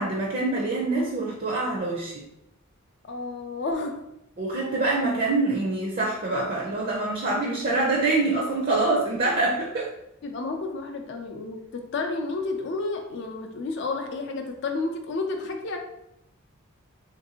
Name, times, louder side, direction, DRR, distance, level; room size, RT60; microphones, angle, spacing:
voice 1, 0.0-2.2 4.4-9.9, right 2 dB, 45° right, -2 dB, 0.5 m, -25 dB
voice 2, 3.1-4.0 10.2-15.8, left 3 dB, 55° left, 4 dB, 0.4 m, -31 dB
3.3 x 2.5 x 2.8 m, 0.84 s
head